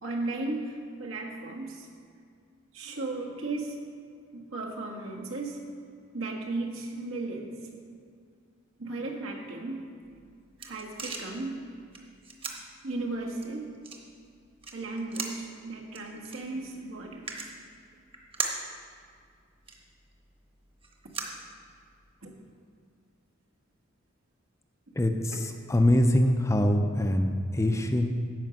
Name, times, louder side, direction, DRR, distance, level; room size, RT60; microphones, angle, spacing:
voice 1, 0.0-1.9 2.7-3.8 4.3-5.6 6.1-7.5 8.8-9.9 10.6-11.6 12.8-13.7 14.7-17.5 22.2-22.3, right 2 dB, 85° right, -1 dB, 1.5 m, -35 dB
sound 1, 10.0-22.1, right 4 dB, 25° right, 1.0 m, -41 dB
voice 2, 24.9-28.1, left 1 dB, 15° left, 5 dB, 0.5 m, -24 dB
11.0 x 5.1 x 7.6 m, 2.2 s
head